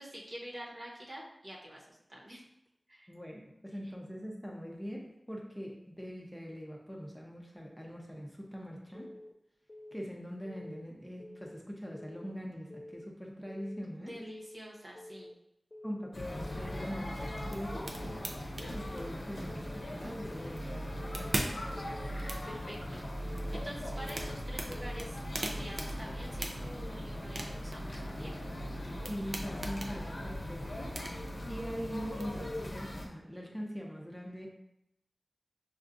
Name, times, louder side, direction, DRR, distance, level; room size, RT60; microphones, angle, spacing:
voice 1, 0.0-2.4 2.9-3.1 14.0-15.3 22.3-28.3, equal, 50° right, -3 dB, 0.9 m, -47 dB
voice 2, 3.1-9.1 9.9-14.2 15.8-17.9 18.7-21.6 29.1-31.0 31.5-34.5, equal, 5° left, -1 dB, 0.6 m, -42 dB
Keyboard (musical) / Alarm, 8.9-9.3 9.7-10.1 10.4-10.8 11.2-11.6 11.9-12.3 12.7-13.1 13.5-13.8 14.2-14.6 15.0-15.3 15.7-16.1 16.5-16.8 17.2-17.6 18.0-18.3 18.7-19.1 19.5-19.8 20.2-20.6 21.0-21.4 21.7-22.1 22.5-22.9 23.2-23.6 24.0-24.4 24.7-25.1, left 1 dB, 45° left, 0.3 m, -49 dB
sound 1, 16.1-33.1, equal, 70° left, 0.8 m, -39 dB
sound 2, 17.0-32.2, right 1 dB, 70° right, 0.5 m, -44 dB
5.6 x 2.3 x 2.6 m, 0.81 s
wide cardioid pair, 65°, 0 cm